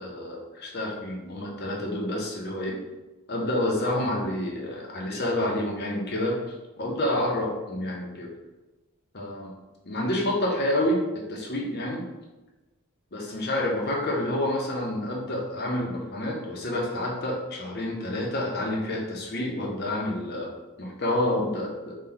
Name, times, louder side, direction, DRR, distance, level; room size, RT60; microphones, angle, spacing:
voice 1, 0.0-2.7 3.3-6.4 6.8-8.3 9.1-9.5 9.8-12.0 13.1-20.5 20.8-21.9, left 1 dB, 50° left, -1 dB, 0.8 m, -28 dB
4.3 x 2.4 x 3.9 m, 1.1 s
head